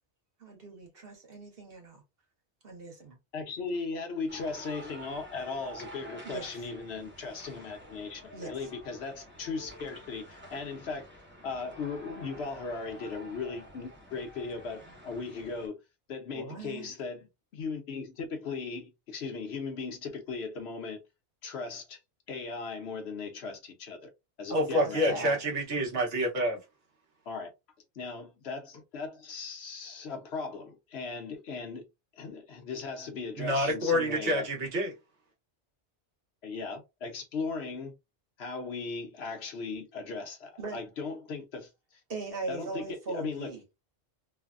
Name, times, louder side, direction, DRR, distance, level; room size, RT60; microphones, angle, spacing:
voice 1, 0.4-2.0 2.6-3.1 6.2-6.5 8.3-8.5 16.3-16.9 24.5-25.4 40.6-40.8 42.1-43.6, right 2 dB, 60° right, 1.1 m, -39 dB
voice 2, 3.3-11.0 11.4-15.7 16.1-17.3 17.5-21.0 21.4-22.0 22.3-24.1 24.4-25.2 27.3-27.5 27.9-31.8 32.1-34.5 36.4-37.9 38.4-42.0 42.5-43.5, left 4 dB, 70° left, 1.0 m, -38 dB
sound 1, 4.3-15.7, equal, 10° right, 0.8 m, -49 dB
voice 3, 24.5-26.6 33.4-34.9, equal, 80° right, 1.3 m, -28 dB
3.2 x 2.1 x 2.4 m
omnidirectional pair, 1.1 m